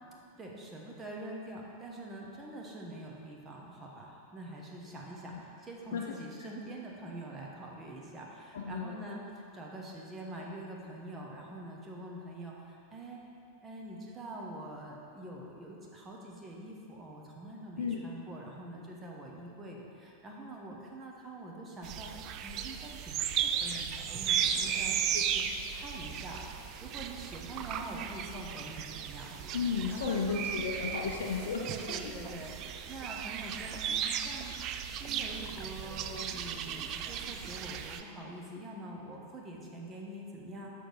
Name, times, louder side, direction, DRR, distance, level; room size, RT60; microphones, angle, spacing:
voice 1, 0.4-9.2 9.5-13.2 13.6-25.4 25.7-29.4 29.9-30.4 31.6-40.7, right 1 dB, 20° right, -2 dB, 1.1 m, -45 dB
voice 2, 8.5-9.1 17.8-18.0 25.1-25.4 29.5-32.0, left 5 dB, 60° left, 0 dB, 0.5 m, -34 dB
sound 1, 21.8-38.0, right 8 dB, 35° right, 0.4 m, -35 dB
6.4 x 6.4 x 4.1 m, 2.7 s
figure-of-eight pair, 90°, 0 cm